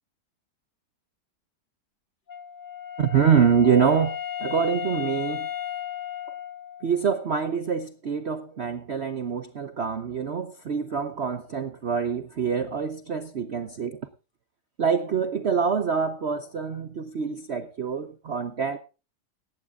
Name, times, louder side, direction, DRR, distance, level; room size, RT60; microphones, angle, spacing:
Wind instrument woodwind instrument, 2.3-7.1, left 10 dB, 35° left, 0.9 m, -34 dB
voice 1, 3.0-5.5 6.8-14.0 14.8-18.8, right 6 dB, 50° right, 10 dB, 0.9 m, -25 dB
18.0 x 15.0 x 2.4 m, 0.32 s
omnidirectional pair, 1.8 m